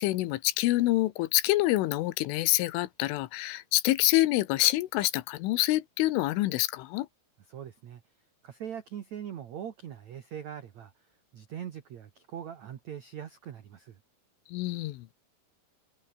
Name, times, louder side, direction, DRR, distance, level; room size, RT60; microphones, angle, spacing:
voice 1, 0.0-7.1 14.5-15.1, left 17 dB, 85° left, 3.5 m, -26 dB
voice 2, 7.5-8.0 8.4-10.9 11.3-14.0, right 9 dB, 90° right, 1.5 m, -41 dB
omnidirectional pair, 5.7 m